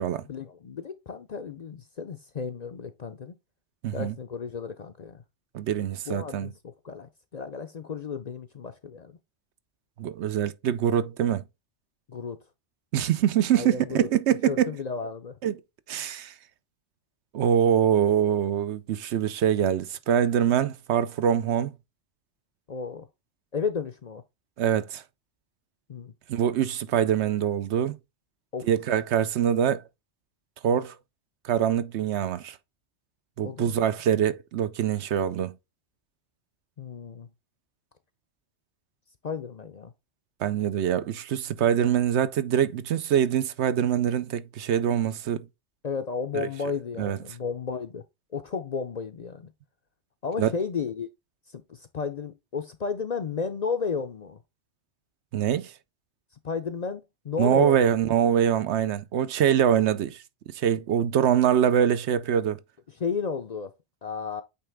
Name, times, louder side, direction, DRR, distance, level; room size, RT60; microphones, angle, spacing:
voice 1, 0.3-3.3 3.9-5.2 6.1-9.2 12.1-12.4 13.5-14.1 14.5-15.4 22.7-23.1 23.5-24.2 25.9-26.1 28.5-28.7 33.4-33.8 36.8-37.3 39.2-39.9 45.8-48.0 48.3-49.5 50.2-51.1 51.5-54.4 56.4-57.8 63.0-63.7 64.0-64.4, left 5 dB, 50° left, 0.6 m, -33 dB
voice 2, 3.8-4.1 5.5-6.5 10.0-11.4 12.9-14.7 15.4-15.5 15.9-16.3 17.3-21.7 24.6-25.0 26.3-28.0 28.7-29.8 30.6-30.9 31.4-32.6 33.4-35.5 40.4-45.4 46.3-46.5 47.0-47.2 50.4-50.5 55.3-55.7 57.4-60.2 60.5-62.6, right 9 dB, 75° right, 0.9 m, -24 dB
8.3 x 3.3 x 3.4 m
omnidirectional pair, 1.2 m